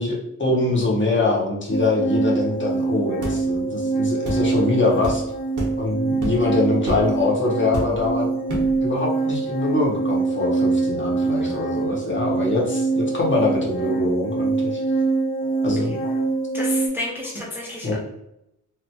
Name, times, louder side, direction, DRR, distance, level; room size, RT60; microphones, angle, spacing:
voice 1, 0.0-5.2 5.8-8.3 8.8-14.8 15.6-16.0 17.8-18.0, left 2 dB, 40° left, -3 dB, 0.7 m, -23 dB
sound 1, 1.7-16.9, right 3 dB, 90° left, 0.9 m, -24 dB
sound 2, 3.2-3.4 4.2-4.4 5.0-5.2 5.6-5.8 6.2-6.5 6.9-7.1 7.7-8.1 8.5-8.8, equal, 70° right, 0.8 m, -28 dB
voice 2, 11.4-11.7 16.5-18.0, left 2 dB, 5° right, -4 dB, 0.4 m, -31 dB
2.9 x 2.1 x 2.7 m, 0.82 s
wide cardioid pair, 180°, 32 cm